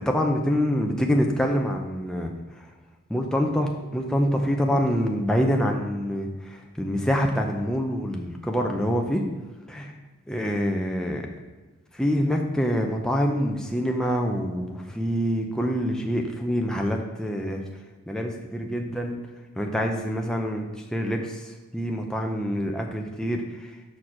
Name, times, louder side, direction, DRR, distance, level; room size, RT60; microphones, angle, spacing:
voice 1, 0.1-2.3 3.1-9.2 9.7-9.9 10.3-11.3 11.9-17.6 18.1-19.2 19.6-23.7, equal, 5° left, 1 dB, 0.5 m, -26 dB
6.4 x 4.6 x 5.9 m, 1.2 s
head